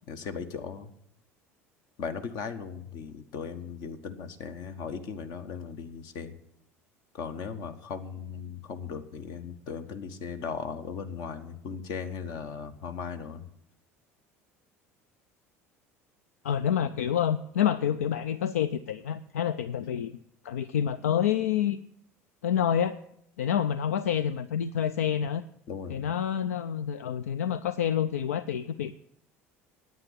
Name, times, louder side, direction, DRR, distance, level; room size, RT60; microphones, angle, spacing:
voice 1, 0.1-0.9 2.0-6.4 7.1-13.5 25.7-26.1, left 6 dB, 60° left, 8 dB, 1.2 m, -37 dB
voice 2, 16.4-20.1 20.4-21.8 22.4-23.0 23.4-25.4 25.9-29.0, left 9 dB, 80° left, 14 dB, 0.4 m, -28 dB
9.6 x 9.2 x 7.0 m, 0.73 s
hypercardioid pair, 65°, 8 cm